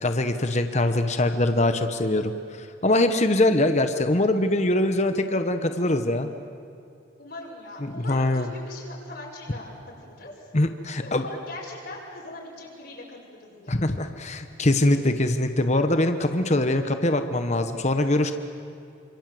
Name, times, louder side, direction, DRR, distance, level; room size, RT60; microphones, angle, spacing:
voice 1, 0.0-2.3 2.6-6.3 7.8-8.5 10.5-11.2 13.7-18.3, left 1 dB, 35° left, 8 dB, 1.1 m, -23 dB
voice 2, 7.2-10.3 11.0-14.0, left 2 dB, 50° left, -3 dB, 6.0 m, -41 dB
28.5 x 26.5 x 7.8 m, 2.7 s
head